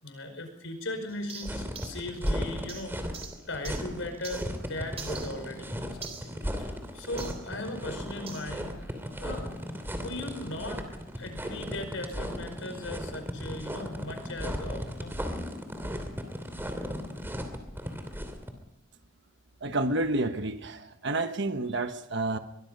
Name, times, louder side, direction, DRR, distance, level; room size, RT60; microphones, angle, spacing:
voice 1, 0.0-3.2 3.5-8.9 9.2-9.5 10.0-10.8 11.2-15.2, left 1 dB, 75° left, 6 dB, 5.2 m, -38 dB
sound 1, 1.1-4.6 5.0-7.5 8.3-8.5, right 6 dB, 30° right, 3.6 m, -46 dB
sound 2, 1.4-18.5, equal, 10° right, 2.7 m, -36 dB
voice 2, 19.6-22.4, right 2 dB, 60° right, 8 dB, 1.2 m, -29 dB
23.0 x 22.0 x 5.4 m, 0.89 s
head